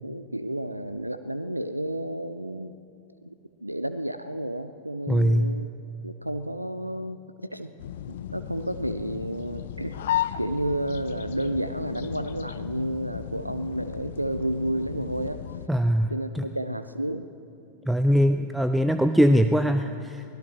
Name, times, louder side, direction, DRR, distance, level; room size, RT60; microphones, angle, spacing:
voice 1, 0.0-2.7 3.2-3.3 3.6-5.7 6.0-7.7 8.1-10.0 10.4-15.4 16.1-17.3, right 1 dB, 85° right, 10 dB, 0.4 m, -31 dB
voice 2, 5.1-5.6 15.7-16.4 17.9-20.2, equal, 5° right, 9 dB, 0.4 m, -22 dB
sound 1, 7.8-15.7, left 11 dB, 60° left, 0.5 m, -35 dB
24.0 x 17.0 x 3.1 m, 2.6 s
figure-of-eight pair, 90°, 0 cm